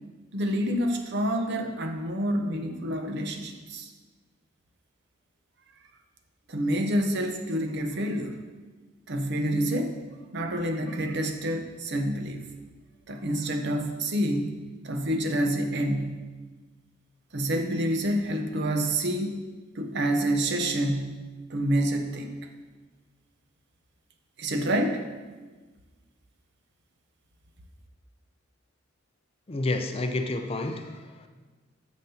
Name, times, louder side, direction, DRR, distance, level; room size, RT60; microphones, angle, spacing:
voice 1, 0.3-3.9 6.5-8.4 9.1-10.0 10.3-12.4 13.1-14.5 14.8-16.2 17.3-19.3 19.7-21.2 21.5-22.3 24.4-25.0, right 1 dB, 60° right, 5 dB, 0.8 m, -27 dB
voice 2, 29.5-31.3, left 2 dB, 30° left, 6 dB, 0.5 m, -30 dB
9.2 x 7.2 x 2.8 m, 1.3 s
head